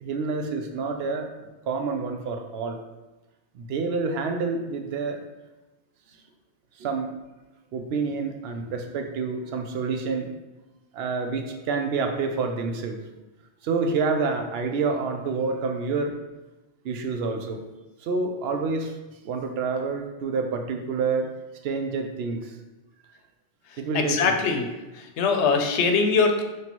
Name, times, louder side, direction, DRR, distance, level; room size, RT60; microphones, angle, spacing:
voice 1, 0.0-1.3 1.7-2.8 3.5-5.2 6.8-7.1 7.7-10.3 10.9-13.0 13.6-16.1 16.8-17.6 18.0-18.9 19.2-21.3 21.6-22.4 23.8-24.4, right 4 dB, 70° right, 5 dB, 0.8 m, -28 dB
voice 2, 23.9-26.4, left 4 dB, 80° left, 5 dB, 0.9 m, -22 dB
3.2 x 2.9 x 4.1 m, 1.1 s
omnidirectional pair, 1.1 m